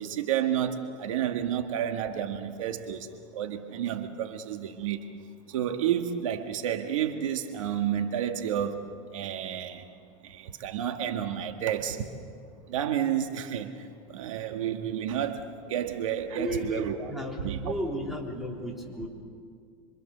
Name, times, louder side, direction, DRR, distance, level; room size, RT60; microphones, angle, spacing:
voice 1, 0.0-3.1 3.3-5.0 5.5-8.8 9.1-9.8 10.2-12.1 12.7-13.7 14.1-15.4 15.7-17.1 17.4-17.7, right 10 dB, 90° right, 6 dB, 1.7 m, -30 dB
voice 2, 16.4-16.8 17.1-19.1, equal, ahead, -2 dB, 3.7 m, -34 dB
27.0 x 24.5 x 6.8 m, 2.2 s
supercardioid pair, 145°, 16 cm